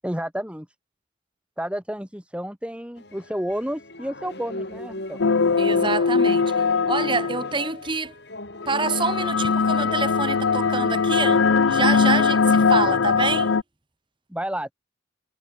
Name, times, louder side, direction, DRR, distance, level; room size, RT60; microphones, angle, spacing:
voice 1, 0.0-0.7 1.6-5.2 14.3-14.7, equal, 5° right, 4.9 m, -30 dB
sound 1, 3.0-12.9, left 1 dB, 60° left, 7.2 m, -38 dB
sound 2, 5.2-7.7 8.6-13.6, left 5 dB, 90° left, 0.6 m, -21 dB
voice 2, 5.6-8.1 8.7-13.6, right 4 dB, 25° right, 2.9 m, -27 dB
head